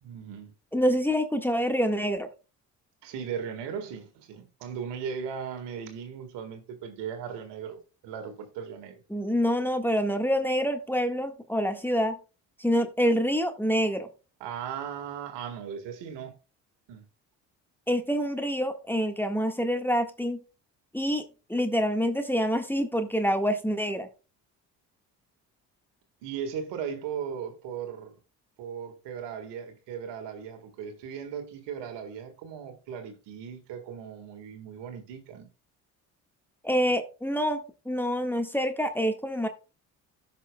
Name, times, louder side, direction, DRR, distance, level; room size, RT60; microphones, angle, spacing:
voice 1, 0.0-0.5 3.0-9.0 14.4-16.4 16.9-17.0 26.2-28.2 28.6-35.5, right 7 dB, 70° right, 1.8 m, -37 dB
voice 2, 0.7-2.3 9.1-12.2 12.6-14.1 17.9-20.4 20.9-24.1 36.6-37.6 37.8-39.5, equal, 5° left, 1.7 m, -26 dB
16.0 x 6.0 x 2.3 m
hypercardioid pair, 55°, 43 cm